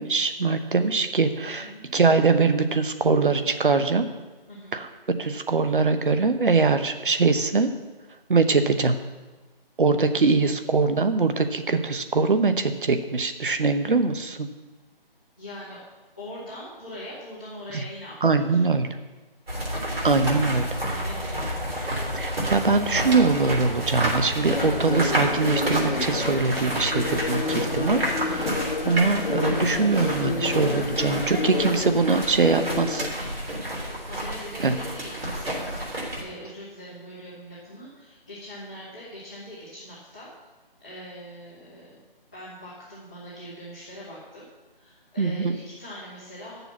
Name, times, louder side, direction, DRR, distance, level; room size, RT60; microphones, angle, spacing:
voice 1, 0.0-4.0 4.7-4.9 5.2-7.7 8.3-8.9 9.8-14.5 17.7-17.8 18.2-18.9 20.0-20.7 22.1-33.1 34.6-34.7 45.2-45.6, right 4 dB, 60° right, 9 dB, 0.9 m, -22 dB
voice 2, 4.5-4.8 15.4-15.8 16.2-18.7 20.9-22.0 34.0-40.3 40.8-42.0 42.3-44.5 44.7-46.6, equal, 10° left, -13 dB, 0.9 m, -42 dB
sound 1, 19.5-36.2, right 1 dB, 85° right, 3.7 m, -30 dB
sound 2, 23.1-28.5, right 1 dB, 25° right, 0.9 m, -44 dB
sound 3, 24.4-33.1, left 4 dB, 70° left, 1.1 m, -30 dB
9.9 x 7.0 x 5.8 m, 1.2 s
figure-of-eight pair, 175°, 29 cm